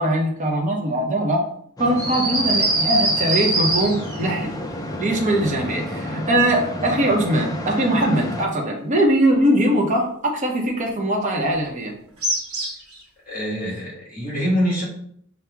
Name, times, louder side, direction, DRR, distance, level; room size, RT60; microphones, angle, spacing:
voice 1, 0.0-1.4 1.8-4.5 5.0-11.9, right 1 dB, 35° right, 0 dB, 0.7 m, -21 dB
sound 1, 1.8-8.5, left 1 dB, 15° left, 0.4 m, -31 dB
sound 2, 2.0-4.3 12.2-12.9, right 2 dB, 85° right, 1.2 m, -22 dB
voice 2, 13.3-14.8, equal, 40° left, -3 dB, 1.5 m, -24 dB
5.8 x 2.0 x 3.4 m, 0.65 s
head